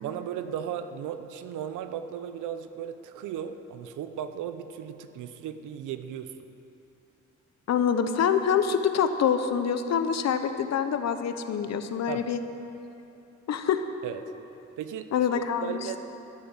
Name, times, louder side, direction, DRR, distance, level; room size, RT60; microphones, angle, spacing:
voice 1, 0.0-6.4 12.1-12.3 14.0-14.2 14.8-16.0, right 9 dB, 80° right, 10 dB, 0.7 m, -36 dB
voice 2, 7.7-12.4 13.5-13.9 15.1-15.8, left 7 dB, 60° left, 9 dB, 0.9 m, -25 dB
12.5 x 7.2 x 7.8 m, 2.9 s
cardioid pair, 90°, 30 cm